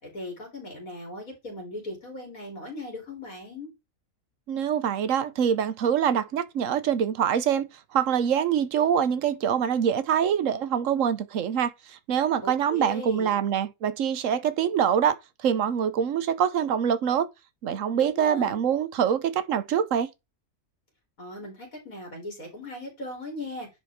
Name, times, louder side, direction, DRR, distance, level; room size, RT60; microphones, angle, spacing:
voice 1, 0.0-3.7 12.4-13.4 18.0-18.6 21.2-23.7, left 2 dB, 80° left, 3.8 m, -38 dB
voice 2, 4.5-17.3 17.6-20.1, right 8 dB, 70° right, 1.1 m, -25 dB
10.0 x 4.4 x 3.6 m
omnidirectional pair, 1.4 m